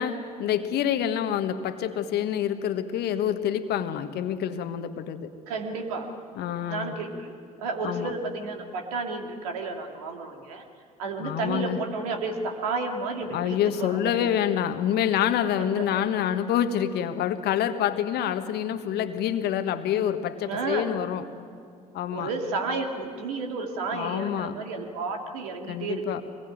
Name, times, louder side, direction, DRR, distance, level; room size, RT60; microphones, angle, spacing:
voice 1, 0.0-5.3 6.3-6.9 7.8-8.1 11.2-11.8 13.3-21.3 21.9-22.3 23.9-24.6 25.7-26.2, left 10 dB, 60° left, 10 dB, 1.5 m, -27 dB
voice 2, 5.5-6.1 6.6-7.3 7.6-10.6 11.0-14.3 15.8-16.0 20.4-20.9 22.1-26.0, right 3 dB, 75° right, 3 dB, 2.7 m, -32 dB
25.0 x 21.0 x 9.3 m, 2.3 s
hypercardioid pair, 55°, 19 cm